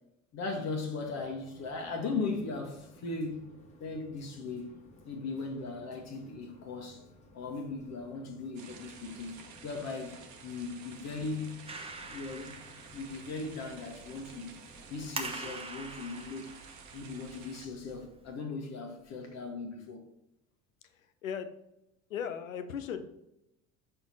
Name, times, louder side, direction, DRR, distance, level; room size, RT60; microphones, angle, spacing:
voice 1, 0.3-3.5 3.8-4.8 5.0-7.0 7.3-11.6 12.0-14.5 14.9-16.5 16.9-20.0, left 3 dB, 40° left, 1.4 m, -38 dB
sound 1, 1.0-15.5, left 1 dB, 15° left, 1.7 m, -58 dB
sound 2, 8.6-17.7, right 6 dB, 45° right, 1.2 m, -52 dB
Clapping, 11.7-18.4, right 3 dB, 15° right, 1.0 m, -45 dB
voice 2, 20.8-21.5 22.1-23.2, left 7 dB, 75° left, 0.8 m, -38 dB
6.7 x 4.4 x 4.1 m
figure-of-eight pair, 65°, 40 cm